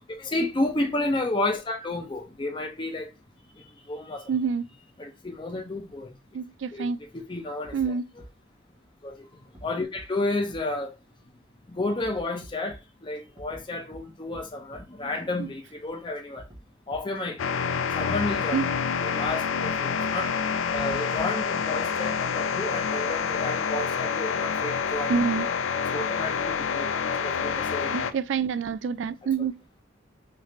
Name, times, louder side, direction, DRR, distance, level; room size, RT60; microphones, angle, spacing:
voice 1, 0.1-3.1 3.6-4.2 5.0-6.1 6.7-6.9 7.1-8.2 9.0-9.1 9.6-10.9 11.7-16.4 16.9-17.4 18.0-18.6 19.0-20.3 20.7-25.1 25.9-28.1, left 2 dB, 25° left, 0.5 m, -31 dB
voice 2, 4.3-4.7 6.3-7.0 7.7-8.1 15.4-15.5 18.5-18.6 25.1-25.5 27.9-29.5, right 6 dB, 70° right, 0.3 m, -27 dB
sound 1, 7.6-7.9 8.2-8.3 9.5-9.6 10.0-10.1 10.5-10.6 12.0-12.8 13.4-13.6 13.9-14.0 14.3-14.4 14.7-14.8 16.4-16.6 16.9-17.0 18.3-18.4 18.7-18.8 19.2-19.3 20.7-21.4, right 1 dB, 25° right, 0.8 m, -45 dB
sound 2, 17.4-28.1, left 6 dB, 80° left, 0.4 m, -27 dB
3.3 x 2.4 x 4.1 m
head